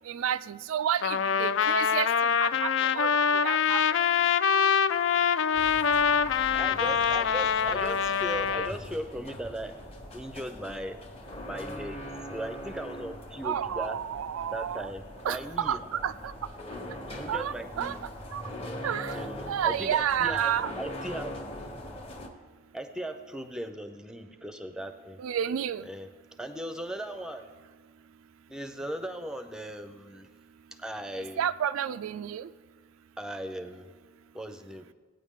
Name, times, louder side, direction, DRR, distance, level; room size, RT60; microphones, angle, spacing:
voice 1, 0.0-3.8 13.4-14.9 15.2-16.3 17.3-18.0 18.3-18.4 18.8-20.7 25.2-25.9 31.2-32.5, right 9 dB, 75° right, 13 dB, 0.3 m, -31 dB
Trumpet, 1.0-8.7, left 7 dB, 60° left, 0.3 m, -25 dB
sound 1, 5.5-22.3, left 1 dB, 30° left, 1.0 m, -42 dB
voice 2, 6.5-9.7 10.1-11.0 11.4-12.0 12.3-14.0 14.5-15.8 17.1-18.0 19.1-21.4 22.7-25.2 25.8-26.1 26.4-27.5 28.5-30.3 30.7-31.5 33.2-33.9 34.3-34.9, right 1 dB, 5° right, 9 dB, 0.5 m, -38 dB
17.5 x 9.2 x 3.7 m, 1.4 s
head